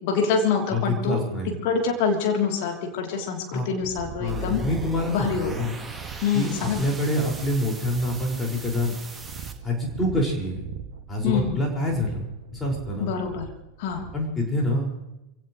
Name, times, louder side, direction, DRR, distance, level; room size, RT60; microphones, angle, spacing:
voice 1, 0.0-1.2 1.6-4.6 5.1-5.5 6.2-6.8 11.2-11.6 13.0-13.5 13.8-14.0, left 6 dB, 50° left, 2 dB, 3.3 m, -25 dB
voice 2, 0.7-1.6 3.5-3.7 4.2-5.7 6.3-9.0 9.6-10.6 11.1-12.2 12.5-13.1 14.1-14.9, left 1 dB, 10° left, -1 dB, 5.6 m, -26 dB
sound 1, 3.8-14.3, right 7 dB, 55° right, 2.2 m, -41 dB
sound 2, 4.3-9.5, right 3 dB, 10° right, 1.7 m, -39 dB
26.5 x 17.0 x 3.2 m, 0.93 s
figure-of-eight pair, 90°, 0 cm